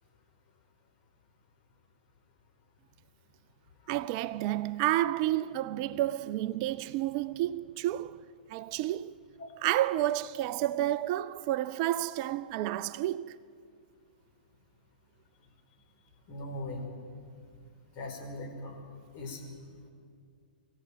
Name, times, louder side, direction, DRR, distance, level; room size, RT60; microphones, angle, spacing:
voice 1, 3.9-8.2 8.5-9.1 9.6-13.4, right 14 dB, 40° right, 0.5 m, -30 dB
voice 2, 16.3-16.8 17.9-18.7 19.1-19.4, left 1 dB, 40° left, 4.9 m, -39 dB
23.0 x 15.5 x 9.0 m
figure-of-eight pair, 110°, 5 cm